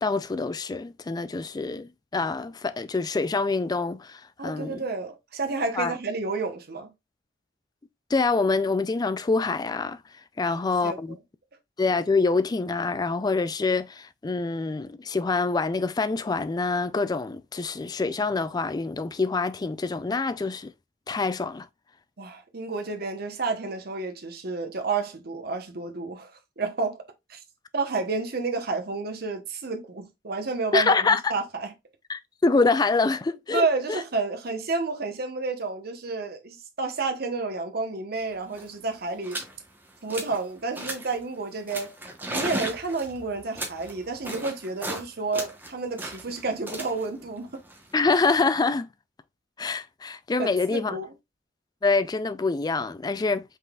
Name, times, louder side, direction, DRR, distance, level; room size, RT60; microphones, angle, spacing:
voice 1, 0.0-4.8 5.8-5.9 8.1-10.0 10.4-11.2 11.8-20.7 21.1-21.7 30.7-31.3 32.1-34.0 47.9-48.9 49.6-51.0 51.8-53.4, left 3 dB, 20° left, 0.3 m, -25 dB
voice 2, 4.4-6.9 10.4-11.2 22.2-27.0 27.3-27.4 27.7-31.7 33.5-39.4 40.0-41.9 42.3-47.5 50.4-51.1, right 3 dB, 60° right, 1.0 m, -30 dB
sound 1, 38.2-38.3 38.5-38.7 39.2-39.5 39.9-40.4 40.7-41.2 41.7-45.0 45.3-48.4, right 1 dB, 10° right, 1.1 m, -36 dB
5.4 x 3.9 x 2.4 m
head